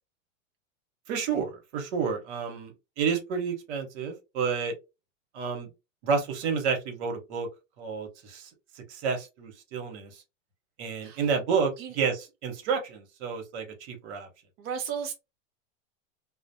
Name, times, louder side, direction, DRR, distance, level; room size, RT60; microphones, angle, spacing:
voice 1, 1.1-4.7 5.3-5.7 6.0-7.5 7.8-8.5 8.9-10.1 10.8-14.3, right 6 dB, 60° right, 1.1 m, -30 dB
voice 2, 14.6-15.1, right 7 dB, 30° right, 0.5 m, -34 dB
2.4 x 2.0 x 2.7 m
hypercardioid pair, 125°, 39 cm